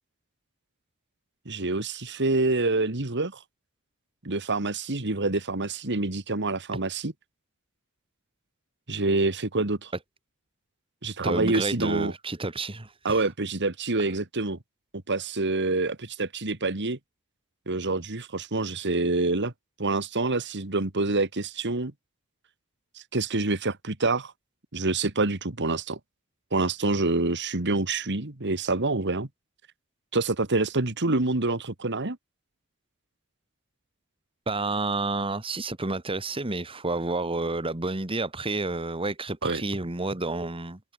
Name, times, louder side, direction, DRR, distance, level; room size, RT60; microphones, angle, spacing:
voice 1, 1.5-3.4 4.2-7.1 8.9-9.9 11.0-12.1 13.0-14.6 15.1-17.0 17.7-19.5 19.8-21.9 23.1-24.3 24.7-26.0 26.5-29.3 30.1-32.2 39.4-39.6, right 3 dB, 55° right, 2.1 m, -26 dB
voice 2, 11.2-13.2 34.5-40.8, right 2 dB, 25° right, 1.6 m, -30 dB
head